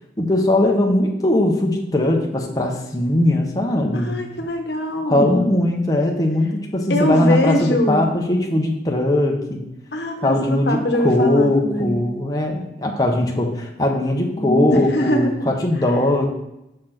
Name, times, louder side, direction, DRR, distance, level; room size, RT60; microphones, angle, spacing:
voice 1, 0.2-4.2 5.1-9.6 10.2-16.3, left 1 dB, 20° left, 0 dB, 0.9 m, -20 dB
voice 2, 3.9-5.4 6.9-8.0 9.9-12.0 14.3-15.3, left 1 dB, 80° left, 4 dB, 1.1 m, -22 dB
6.5 x 4.3 x 5.8 m, 0.88 s
head